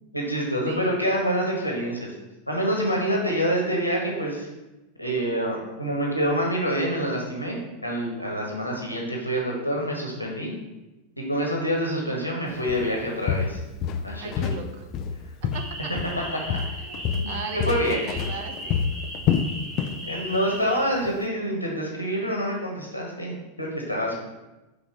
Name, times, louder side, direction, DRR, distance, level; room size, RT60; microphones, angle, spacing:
voice 1, 0.1-2.1 2.5-4.5 5.0-10.5 11.2-13.6 14.0-14.6 16.2-16.6 17.1-18.1 20.0-24.2, equal, 90° left, -1 dB, 1.5 m, -27 dB
voice 2, 0.6-1.4 14.2-14.9 15.5-15.9 16.2-17.0 17.3-18.9 24.0-24.1, right 5 dB, 50° right, 5 dB, 0.8 m, -38 dB
Walk footsteps, 12.7-12.9 13.3-14.6 14.9-16.2 16.5-20.0 20.3-20.6 21.0-21.1, left 7 dB, 35° left, 0.5 m, -27 dB
sound 1, 15.5-20.8, equal, 15° right, 1.8 m, -37 dB
5.5 x 3.9 x 5.5 m, 1.0 s
figure-of-eight pair, 90°, 0 cm